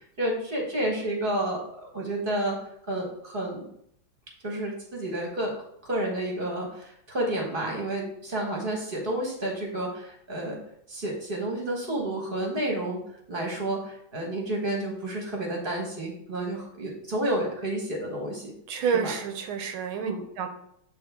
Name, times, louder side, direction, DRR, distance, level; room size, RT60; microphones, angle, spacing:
voice 1, 0.2-1.6 1.9-2.6 2.9-3.7 4.4-5.5 5.8-10.6 10.9-13.0 13.3-18.5 18.9-19.1 20.0-20.2, right 1 dB, 30° right, 0 dB, 1.2 m, -30 dB
voice 2, 18.7-20.5, right 6 dB, 85° right, 7 dB, 1.6 m, -29 dB
7.9 x 3.5 x 3.6 m, 0.71 s
omnidirectional pair, 2.2 m